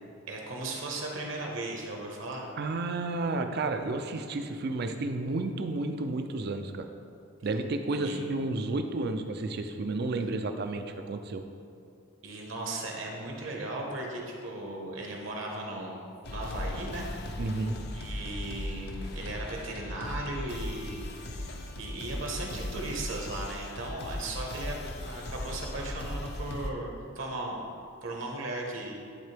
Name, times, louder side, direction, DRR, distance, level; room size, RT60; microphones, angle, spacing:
voice 1, 0.3-2.5 7.9-8.2 12.2-16.0 16.3-17.1 17.9-26.9 27.1-27.6 28.0-29.0, right 2 dB, 65° right, -1 dB, 1.1 m, -37 dB
voice 2, 2.6-6.9 7.4-11.4 17.4-17.8, right 2 dB, 50° right, 7 dB, 0.4 m, -31 dB
sound 1, 16.2-26.7, left 1 dB, 50° left, 0.5 m, -38 dB
11.0 x 3.7 x 3.4 m, 2.4 s
head